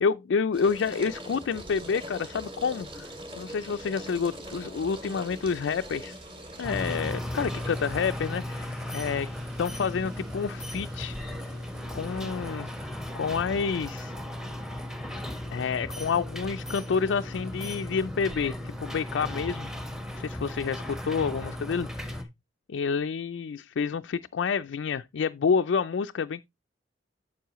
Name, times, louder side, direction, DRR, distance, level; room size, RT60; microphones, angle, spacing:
voice 1, 0.0-3.1 3.4-6.2 6.6-9.3 9.6-11.2 11.9-12.7 13.1-14.2 15.5-19.7 20.2-22.2 22.7-26.4, left 5 dB, 70° left, 0.4 m, -29 dB
sound 1, 0.5-18.0, equal, 30° right, 2.6 m, -44 dB
sound 2, 2.9-13.0, right 3 dB, 70° right, 5.3 m, -54 dB
sound 3, 6.6-22.2, left 1 dB, 5° right, 1.1 m, -36 dB
9.3 x 7.2 x 3.0 m
head